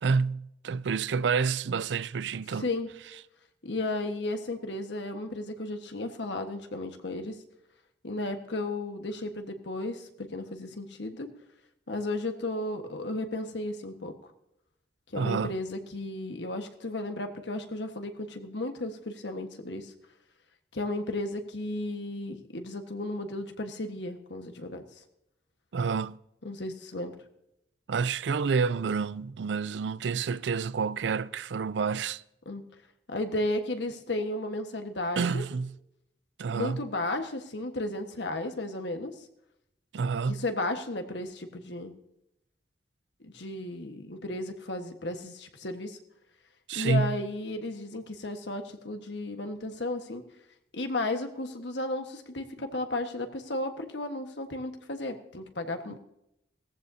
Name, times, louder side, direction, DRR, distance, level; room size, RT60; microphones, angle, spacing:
voice 1, 0.0-2.7 15.2-15.5 25.7-26.2 27.9-32.2 35.2-35.7 36.4-36.8 39.9-40.4 46.7-47.2, right 5 dB, 85° right, 0.4 m, -28 dB
voice 2, 2.5-2.9 3.6-7.4 8.0-11.3 11.9-14.3 15.1-19.9 20.7-24.8 26.4-27.1 32.4-32.6 33.1-35.4 36.5-39.1 40.3-41.9 43.2-46.0 46.7-50.2 50.7-56.0, left 2 dB, 85° left, 1.4 m, -34 dB
18.0 x 14.5 x 2.8 m
head